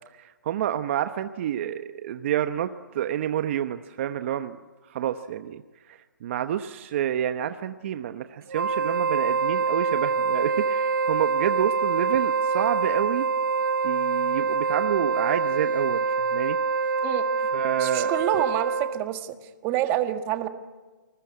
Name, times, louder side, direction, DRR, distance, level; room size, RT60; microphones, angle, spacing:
voice 1, 0.1-4.6 4.9-5.6 6.2-13.3 13.8-16.6 17.5-18.1, right 10 dB, 40° right, 9 dB, 1.0 m, -28 dB
Wind instrument woodwind instrument, 8.5-19.1, right 5 dB, 85° right, 1.1 m, -25 dB
voice 2, 17.8-19.4 19.6-20.5, right 13 dB, 25° right, 8 dB, 1.6 m, -27 dB
28.0 x 21.0 x 9.7 m, 1.3 s
hypercardioid pair, 150°, 10 cm